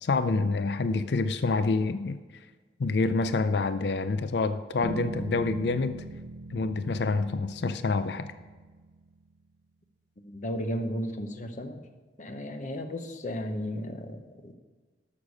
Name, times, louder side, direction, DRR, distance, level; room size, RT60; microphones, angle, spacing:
voice 1, 0.0-2.2 2.8-6.0 6.5-8.3, left 3 dB, 70° left, 11 dB, 0.4 m, -27 dB
sound 1, 4.8-9.2, right 2 dB, 80° right, 0.7 m, -40 dB
voice 2, 10.2-11.8 12.2-14.6, equal, 45° left, 7 dB, 0.8 m, -34 dB
12.0 x 6.5 x 6.3 m, 1.4 s
head